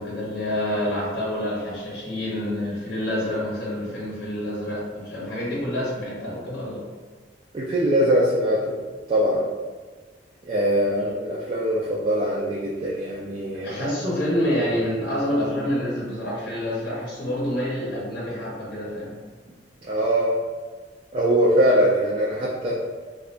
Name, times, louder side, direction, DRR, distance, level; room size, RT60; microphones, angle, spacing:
voice 1, 0.0-6.8 10.9-11.1 13.6-19.1, left 1 dB, 60° left, -7 dB, 0.7 m, -27 dB
voice 2, 7.5-8.8 9.1-9.4 10.4-14.0 19.8-20.3 21.1-22.8, equal, 35° right, -5 dB, 0.3 m, -22 dB
2.7 x 2.3 x 2.4 m, 1.4 s
head